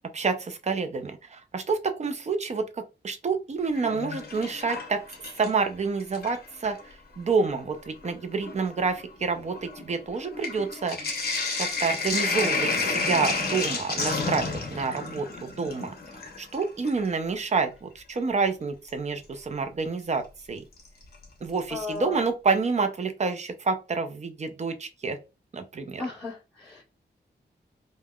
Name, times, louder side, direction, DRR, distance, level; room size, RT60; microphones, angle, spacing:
voice 1, 0.1-5.0 5.4-11.0 11.6-15.9 16.4-20.6 21.4-25.2 25.5-26.0, right 4 dB, 40° right, 7 dB, 0.5 m, -28 dB
Sink (filling or washing), 3.6-5.7 6.0-6.8 7.6-7.7 8.0-17.1 18.9-19.0 20.8-21.2 21.6-21.7 21.9-22.0, left 3 dB, 60° left, 0.8 m, -31 dB
voice 2, 15.0-15.4 21.7-22.3 26.0-26.8, left 3 dB, 10° left, -11 dB, 1.4 m, -36 dB
3.5 x 2.2 x 2.3 m, 0.28 s
wide cardioid pair, 160°, 18 cm